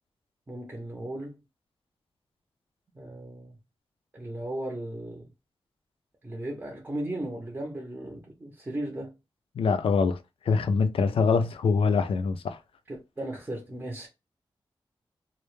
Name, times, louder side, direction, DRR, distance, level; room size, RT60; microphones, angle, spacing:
voice 1, 0.5-1.4 2.9-3.6 4.1-5.3 6.2-9.1 12.9-14.1, right 1 dB, 20° right, 0.6 m, -36 dB
voice 2, 9.6-10.2 10.5-12.6, left 5 dB, 80° left, 0.3 m, -24 dB
2.1 x 2.0 x 3.0 m
wide cardioid pair, 115°, 9 cm